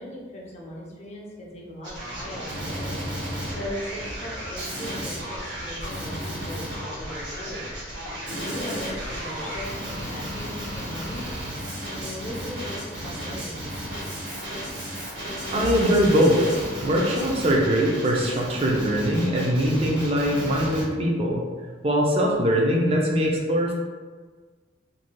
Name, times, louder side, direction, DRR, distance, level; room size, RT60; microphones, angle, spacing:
voice 1, 0.0-11.2 12.0-13.7, equal, 35° left, -4 dB, 0.6 m, -39 dB
Male speech man speaking, 1.8-20.8, equal, 85° right, 1.2 m, -33 dB
voice 2, 15.5-16.5 16.8-21.4 21.8-23.7, equal, 30° right, -1 dB, 0.4 m, -22 dB
3.1 x 2.6 x 2.2 m, 1.4 s
head